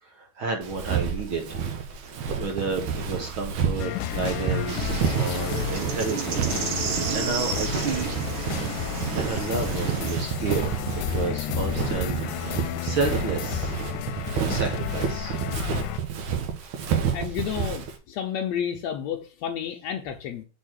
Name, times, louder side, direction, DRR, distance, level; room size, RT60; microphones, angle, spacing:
voice 1, 0.0-1.6 2.4-6.5 6.7-8.1 9.1-13.8 14.3-15.5 16.8-16.9, right 4 dB, 55° right, 1.6 m, -31 dB
Walk footsteps, 0.6-18.0, right 7 dB, 75° right, 2.5 m, -30 dB
sound 1, 3.8-16.0, left 14 dB, 85° left, 2.1 m, -32 dB
sound 2, 4.7-10.3, right 7 dB, 90° right, 3.0 m, -32 dB
voice 2, 17.1-20.4, left 8 dB, 70° left, 1.8 m, -31 dB
6.2 x 4.6 x 6.3 m
omnidirectional pair, 3.6 m